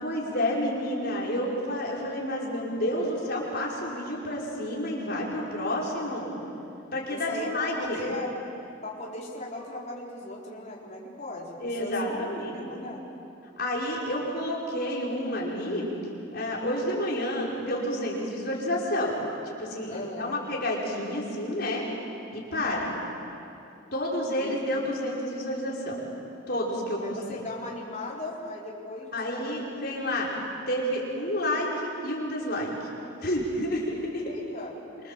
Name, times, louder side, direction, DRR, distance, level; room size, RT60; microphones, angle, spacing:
voice 1, 0.0-6.3 6.9-8.0 11.6-12.6 13.6-15.9 16.3-19.2 19.4-21.9 22.3-22.9 23.9-26.0 26.5-27.0 29.1-30.3 30.7-32.7 33.2-34.2, left 1 dB, 50° left, -4 dB, 5.5 m, -30 dB
voice 2, 7.1-8.3 8.8-13.0 19.9-20.3 24.4-24.6 27.0-29.6 34.2-34.7, left 2 dB, 35° left, -4 dB, 4.3 m, -38 dB
26.5 x 25.5 x 7.7 m, 2.7 s
head